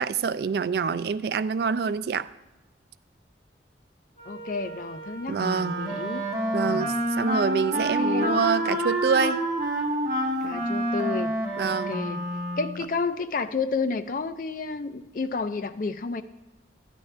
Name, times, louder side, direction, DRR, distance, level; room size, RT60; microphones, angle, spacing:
voice 1, 0.0-2.3 5.3-5.8 6.5-9.5 11.6-11.9, right 6 dB, 60° right, 0.3 m, -26 dB
Wind instrument woodwind instrument, 4.1-9.0, right 3 dB, 35° left, 3.2 m, -42 dB
voice 2, 4.3-6.2 6.6-6.9 7.7-8.4 10.4-11.3 11.6-12.2 12.6-16.2, left 4 dB, 50° left, 0.4 m, -31 dB
Wind instrument woodwind instrument 2, 5.4-12.9, right 1 dB, 40° right, 1.4 m, -28 dB
13.0 x 10.0 x 3.3 m
head